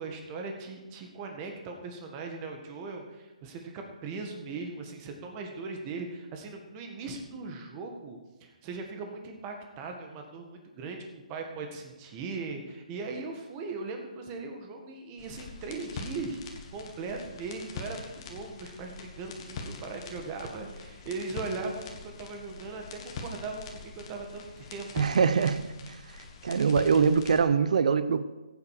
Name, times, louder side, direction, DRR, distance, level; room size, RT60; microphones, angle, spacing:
voice 1, 0.0-24.9, right 3 dB, 20° right, 3 dB, 1.7 m, -39 dB
sound 1, 15.2-27.4, left 4 dB, 30° left, 1.6 m, -43 dB
voice 2, 25.0-26.0 26.4-28.2, right 6 dB, 60° right, 13 dB, 0.8 m, -24 dB
15.5 x 9.2 x 4.9 m, 1.2 s
hypercardioid pair, 160°, 4 cm